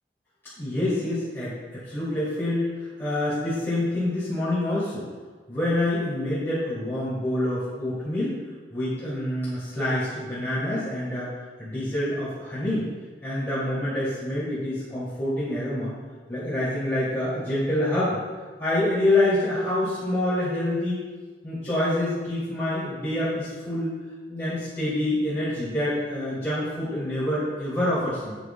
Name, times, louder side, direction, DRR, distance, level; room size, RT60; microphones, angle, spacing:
voice 1, 0.6-2.7 3.0-5.0 5.5-8.3 8.7-11.3 11.6-12.8 13.2-15.9 16.3-18.2 18.6-21.0 21.4-24.0 24.3-28.4, left 1 dB, 15° left, -12 dB, 2.7 m, -26 dB
10.5 x 8.3 x 2.3 m, 1.4 s
head